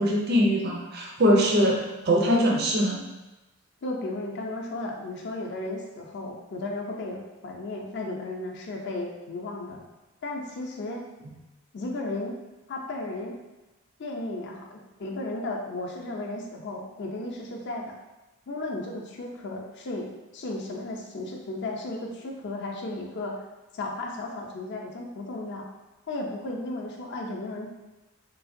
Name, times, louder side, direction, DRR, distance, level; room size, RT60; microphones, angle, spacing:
voice 1, 0.0-3.0, equal, 45° right, -1 dB, 0.4 m, -22 dB
voice 2, 3.8-9.8 10.2-11.0 11.7-12.4 12.7-13.4 14.0-18.0 18.5-23.4 23.7-25.7 26.1-27.7, left 2 dB, 50° left, 0 dB, 0.5 m, -34 dB
3.2 x 2.8 x 2.6 m, 1.1 s
head